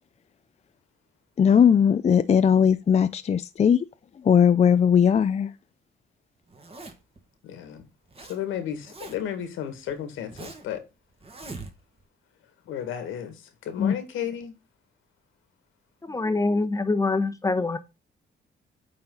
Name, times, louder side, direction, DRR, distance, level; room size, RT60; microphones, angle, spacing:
voice 1, 1.4-3.8 4.3-5.5 13.8-13.9, left 7 dB, 35° left, 0.5 m, -19 dB
Zipper (clothing), 6.5-7.2 7.8-8.4 8.6-9.4 9.9-10.7 11.2-12.0, right 3 dB, 30° right, 2.1 m, -42 dB
voice 2, 7.4-7.9 8.2-10.8 12.7-14.5, left 9 dB, 90° left, 2.1 m, -33 dB
voice 3, 16.0-17.8, left 3 dB, 15° left, 1.1 m, -25 dB
8.7 x 4.3 x 3.9 m
cardioid pair, 90°, 20 cm